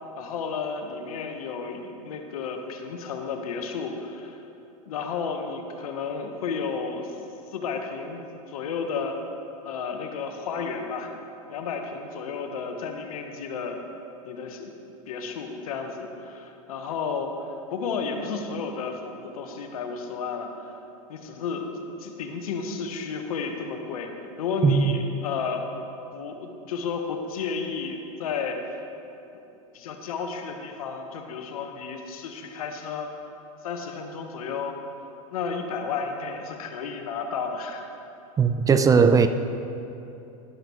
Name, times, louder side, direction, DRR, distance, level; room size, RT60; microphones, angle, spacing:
voice 1, 0.2-4.4 4.9-7.2 7.5-8.2 8.5-9.2 9.6-11.1 11.5-13.8 14.2-14.7 15.1-20.7 21.1-24.1 24.4-25.6 26.1-28.8 29.7-33.1 33.6-34.8 35.3-37.9, left 5 dB, 80° left, 4 dB, 1.2 m, -32 dB
voice 2, 38.4-39.3, right 5 dB, 20° right, 10 dB, 0.4 m, -18 dB
12.0 x 11.0 x 3.1 m, 2.9 s
hypercardioid pair, 105°, 19 cm